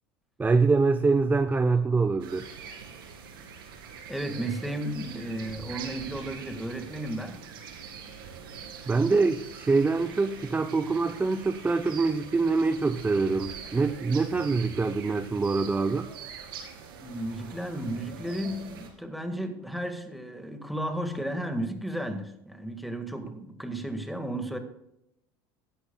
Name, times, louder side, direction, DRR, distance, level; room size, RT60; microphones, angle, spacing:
voice 1, 0.4-2.5 8.9-16.1, right 4 dB, 15° right, 9 dB, 0.7 m, -25 dB
sound 1, 2.2-18.9, right 6 dB, 90° right, 2.5 m, -43 dB
voice 2, 4.1-7.4 17.0-24.6, right 1 dB, ahead, 6 dB, 1.8 m, -34 dB
16.5 x 11.0 x 2.3 m, 0.81 s
supercardioid pair, 95°, 12 cm